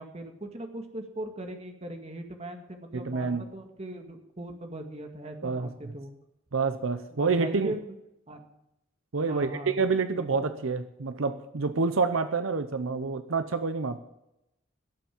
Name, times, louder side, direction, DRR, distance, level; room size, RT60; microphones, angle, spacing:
voice 1, 0.0-6.1 7.1-7.9 8.3-8.4 9.3-9.8 10.1-10.5, right 1 dB, 30° right, 4 dB, 2.0 m, -39 dB
voice 2, 2.9-3.4 5.4-5.9 6.5-7.7 9.1-14.0, right 4 dB, 80° right, 10 dB, 0.8 m, -28 dB
17.5 x 7.1 x 7.7 m, 0.86 s
head